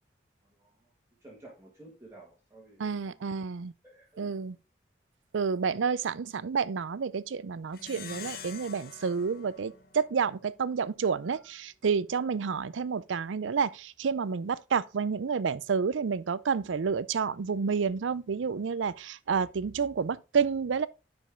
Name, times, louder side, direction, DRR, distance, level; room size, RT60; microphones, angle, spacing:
voice 1, 0.4-0.9 1.2-3.4 3.8-4.3 12.3-12.4, right 2 dB, 15° right, 1.9 m, -53 dB
voice 2, 2.8-3.7 4.2-4.5 5.3-20.9, right 5 dB, 85° right, 0.5 m, -29 dB
Plucked string instrument, 7.7-10.5, left 7 dB, 50° left, 1.0 m, -46 dB
9.9 x 5.3 x 3.7 m
head